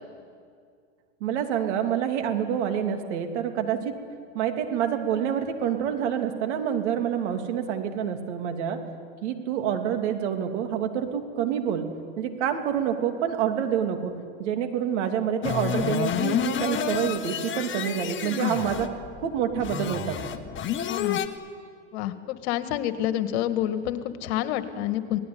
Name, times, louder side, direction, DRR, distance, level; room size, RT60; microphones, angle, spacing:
voice 1, 1.2-4.0 4.3-8.8 9.2-11.9 12.2-14.1 14.4-18.9 19.2-20.2, right 9 dB, 70° right, 5 dB, 3.0 m, -27 dB
sound 1, 15.4-21.3, left 9 dB, 30° left, 1.6 m, -29 dB
voice 2, 20.9-21.2 21.9-25.2, left 12 dB, 65° left, 10 dB, 1.9 m, -28 dB
27.0 x 18.5 x 9.5 m, 2.2 s
hypercardioid pair, 100°, 36 cm